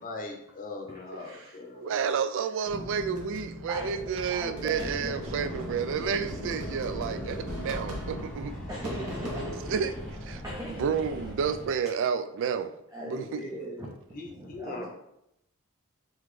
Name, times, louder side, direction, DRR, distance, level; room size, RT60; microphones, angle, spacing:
voice 1, 0.0-1.9 13.3-14.9, left 3 dB, 40° left, 2 dB, 0.7 m, -41 dB
voice 2, 1.2-1.6 3.7-4.0 4.3-5.5 8.7-9.8 10.4-11.1 12.9-13.9 14.2-14.9, equal, 15° right, -4 dB, 0.6 m, -40 dB
voice 3, 1.7-8.5 9.7-9.9 10.2-10.4 10.8-12.7 13.0-13.4, right 6 dB, 60° right, 11 dB, 0.3 m, -30 dB
sound 1, 2.6-10.7, equal, 85° right, 0.9 m, -40 dB
sound 2, 4.7-11.7, equal, 5° left, 0.9 m, -40 dB
3.9 x 2.9 x 3.1 m, 0.80 s
head